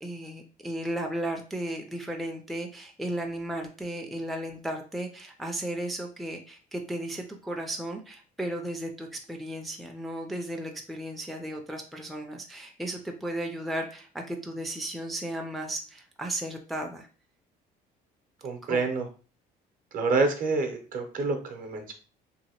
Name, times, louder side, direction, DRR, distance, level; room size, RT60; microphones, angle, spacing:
voice 1, 0.0-17.1 18.6-18.8, right 1 dB, ahead, 2 dB, 0.4 m, -35 dB
voice 2, 18.4-19.0 19.9-21.9, right 3 dB, 55° right, 5 dB, 0.8 m, -27 dB
2.8 x 2.7 x 2.8 m, 0.38 s
cardioid pair, 110°, 17 cm